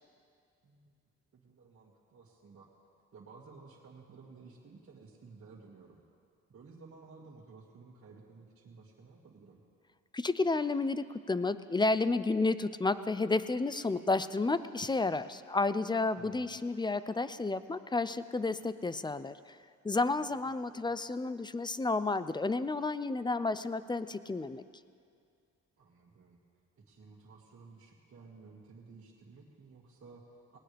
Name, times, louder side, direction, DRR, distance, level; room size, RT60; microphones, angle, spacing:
voice 1, 0.6-1.0 1.3-2.7 3.1-6.0 6.5-9.6 16.2-16.6 20.7-21.0 25.8-26.4 26.8-30.6, right 4 dB, 50° right, -5 dB, 2.2 m, -55 dB
voice 2, 10.1-19.6 19.8-24.6, left 3 dB, 15° left, 14 dB, 0.5 m, -31 dB
19.5 x 19.0 x 3.5 m, 2.3 s
cardioid pair, 90°, 30 cm